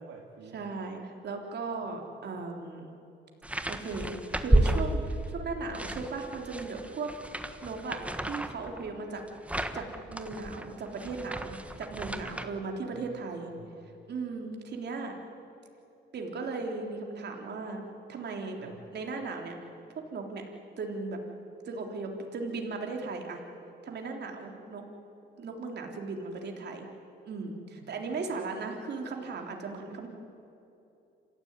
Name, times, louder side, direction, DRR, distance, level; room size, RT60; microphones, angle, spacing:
voice 1, 0.0-0.6 4.9-5.9 11.8-12.4 12.9-13.1 13.4-13.9 18.6-18.8 27.7-27.9, right 3 dB, 80° right, -2 dB, 2.7 m, -51 dB
voice 2, 0.5-2.9 3.7-7.1 7.6-8.0 8.3-9.2 9.7-13.5 14.1-15.2 16.1-17.8 18.1-19.6 20.1-20.4 20.8-21.2 21.7-23.4 23.8-24.8 25.4-26.9 27.2-30.1, right 3 dB, 60° right, 2 dB, 3.6 m, -37 dB
sound 1, 3.4-5.4 5.7-12.4, right 1 dB, 5° right, 1.4 m, -31 dB
27.0 x 15.5 x 9.6 m, 2.8 s
cardioid pair, 90°, 20 cm